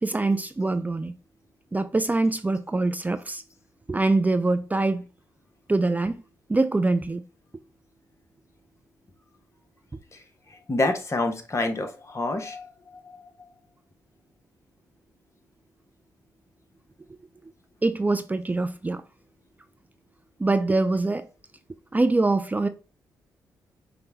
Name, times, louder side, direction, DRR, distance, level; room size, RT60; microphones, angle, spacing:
voice 1, 0.0-1.1 1.7-3.4 3.9-5.0 5.7-6.2 6.5-7.2 17.8-19.0 20.4-21.3 21.9-22.7, right 2 dB, 20° right, 0.4 m, -24 dB
voice 2, 10.5-13.2, left 2 dB, 40° left, 1.0 m, -28 dB
5.5 x 2.2 x 3.9 m
supercardioid pair, 50°, 8 cm